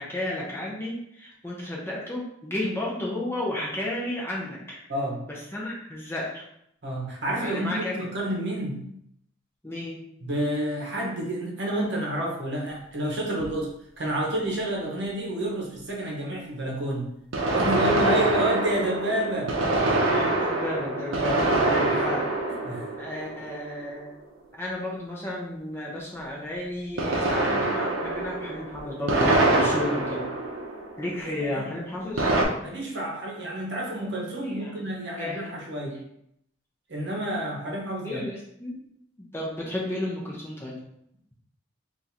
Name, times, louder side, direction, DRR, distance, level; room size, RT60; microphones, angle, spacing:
voice 1, 0.0-4.8 5.3-6.4 7.4-8.0 9.6-10.0 20.1-22.3 23.0-24.1 24.5-30.3 31.0-32.3 34.4-34.9 35.2-35.6 38.0-38.8 39.2-40.8, left 1 dB, 10° left, -4 dB, 0.6 m, -33 dB
voice 2, 4.9-5.2 6.8-8.8 10.2-17.1 17.5-19.5 21.1-21.4 21.6-21.9 22.6-22.9 31.2-31.7 32.6-36.0 36.9-38.2, right 1 dB, 60° right, -2 dB, 0.9 m, -29 dB
sound 1, 13.4-13.5 17.3-23.8 27.0-31.2 32.2-32.4, right 2 dB, 85° right, 0.6 m, -25 dB
3.6 x 2.5 x 2.8 m, 0.74 s
head